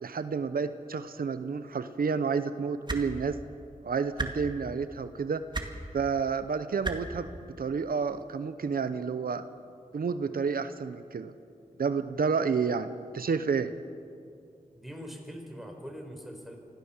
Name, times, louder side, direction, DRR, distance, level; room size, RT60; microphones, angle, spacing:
voice 1, 0.0-3.4 3.8-5.4 5.9-7.3 7.6-9.4 9.9-11.3 11.8-13.7, right 5 dB, 90° right, 11 dB, 0.8 m, -30 dB
sound 1, 2.9-3.0 4.2-4.3 5.5-5.7 6.8-7.0 8.2-8.3, right 2 dB, 30° right, 2.2 m, -31 dB
voice 2, 14.7-16.6, equal, ahead, 2 dB, 4.7 m, -42 dB
25.0 x 16.0 x 7.3 m, 2.4 s
wide cardioid pair, 65°, 15 cm